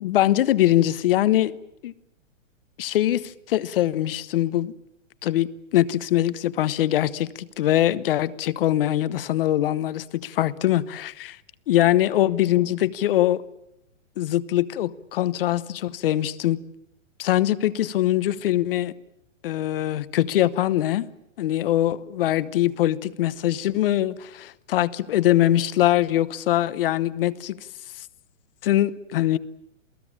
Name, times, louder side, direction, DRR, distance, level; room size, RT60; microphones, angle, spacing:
voice 1, 0.0-1.6 1.8-1.9 2.8-4.7 5.2-11.4 11.7-13.4 14.2-16.6 17.2-18.9 19.4-21.1 21.4-27.6 28.6-29.4, left 13 dB, 45° left, 1.0 m, -22 dB
28.0 x 18.0 x 8.8 m
hypercardioid pair, 160°, 39 cm